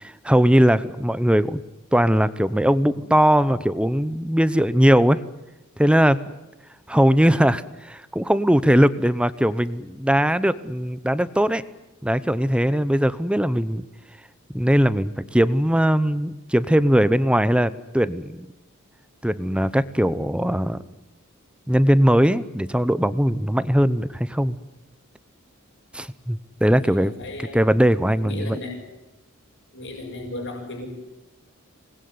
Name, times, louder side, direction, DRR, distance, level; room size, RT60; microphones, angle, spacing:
voice 1, 0.0-1.6 1.9-5.2 5.8-6.2 6.9-11.6 12.0-13.8 14.5-18.5 19.2-20.8 21.7-24.6 25.9-27.1 27.5-28.6, equal, 5° right, 15 dB, 0.9 m, -20 dB
voice 2, 26.7-27.6 28.2-28.8 29.7-30.9, left 2 dB, 60° left, 1 dB, 6.9 m, -35 dB
27.0 x 20.5 x 9.6 m, 0.98 s
head